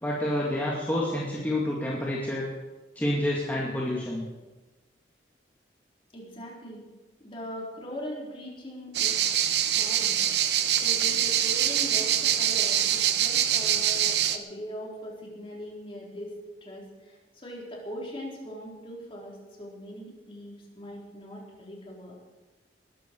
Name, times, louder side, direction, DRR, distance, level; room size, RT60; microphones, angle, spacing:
voice 1, 0.0-2.4 3.0-4.2, left 1 dB, 10° left, -5 dB, 2.3 m, -28 dB
voice 2, 6.1-6.8 7.2-9.2 9.7-10.2 10.8-22.2, equal, 30° left, -2 dB, 4.1 m, -40 dB
sound 1, 8.9-14.4, right 10 dB, 65° right, 0.9 m, -24 dB
20.5 x 13.5 x 4.7 m, 1.2 s
head